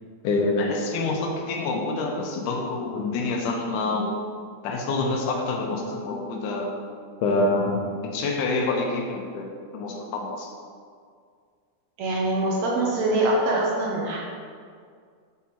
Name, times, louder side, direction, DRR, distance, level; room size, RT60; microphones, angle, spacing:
voice 1, 0.2-4.2 4.6-6.7 7.2-10.5, left 2 dB, 80° left, 1 dB, 2.1 m, -26 dB
voice 2, 12.0-14.2, right 2 dB, 70° right, -2 dB, 1.8 m, -24 dB
7.2 x 3.6 x 4.3 m, 2.1 s
omnidirectional pair, 3.6 m